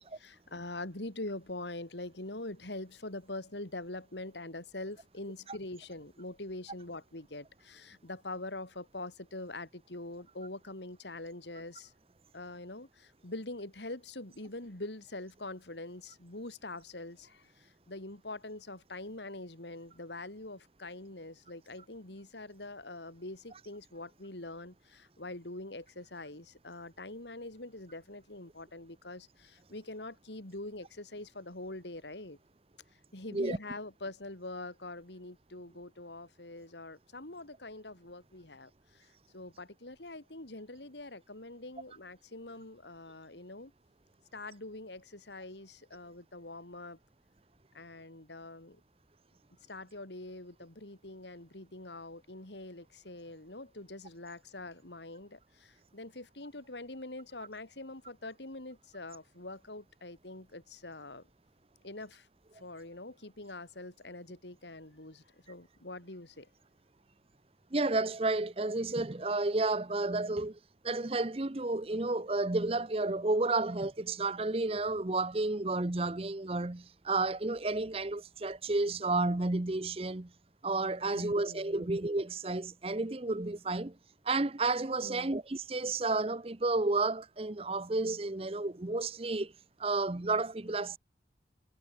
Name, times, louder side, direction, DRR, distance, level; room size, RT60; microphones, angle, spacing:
voice 1, 0.0-11.9 12.3-32.4 33.1-39.1 39.3-43.7 44.3-47.0 47.7-48.8 49.7-61.2 61.8-62.3 62.5-66.5 81.0-81.9 85.0-85.3, left 2 dB, 75° left, 3.2 m, -44 dB
voice 2, 67.7-70.6 70.8-80.3 80.6-83.9 84.2-89.5 89.8-91.0, right 2 dB, 30° right, 0.8 m, -31 dB
head